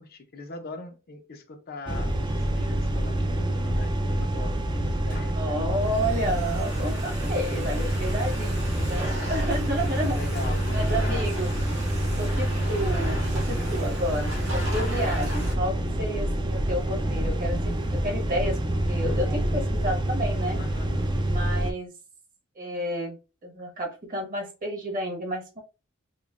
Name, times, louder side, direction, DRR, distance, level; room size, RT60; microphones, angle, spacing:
voice 1, 0.0-5.4 10.1-11.3 11.9-12.3 20.5-21.2, left 3 dB, 45° left, 0.6 m, -41 dB
sound 1, 1.9-21.7, right 1 dB, 20° right, 0.4 m, -27 dB
Domestic sounds home sounds, 4.9-15.5, equal, 80° right, 1.6 m, -37 dB
voice 2, 5.4-10.2 10.7-11.5 12.2-18.6 18.9-20.6 21.3-21.9 22.5-23.2 23.4-25.6, equal, 40° right, 1.2 m, -31 dB
5.1 x 2.1 x 2.4 m
head